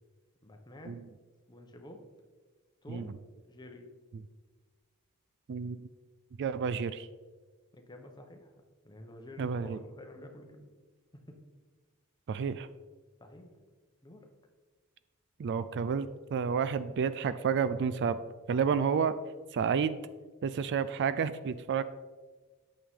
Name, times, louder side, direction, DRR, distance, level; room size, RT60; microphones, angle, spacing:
voice 1, 0.4-1.0 1.5-2.0 2.8-3.2 3.5-3.9 7.7-8.5 8.8-10.7 11.1-11.4 13.2-13.5 14.0-14.3, left 1 dB, 20° left, 4 dB, 1.0 m, -49 dB
voice 2, 5.5-5.9 6.4-7.1 9.4-9.8 12.3-12.7 15.4-18.2 18.5-19.1 19.5-19.9 20.4-21.8, right 6 dB, 55° right, 13 dB, 0.3 m, -30 dB
8.7 x 6.5 x 3.7 m, 1.3 s
head